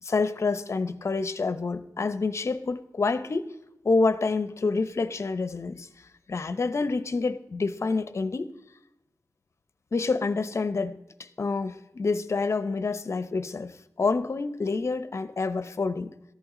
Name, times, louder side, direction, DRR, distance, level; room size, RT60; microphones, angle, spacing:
voice 1, 0.0-3.5 3.8-5.9 6.3-8.5 9.9-16.1, left 3 dB, 50° left, 0.8 m, -28 dB
14.5 x 11.0 x 3.8 m
wide cardioid pair, 100°, 6 cm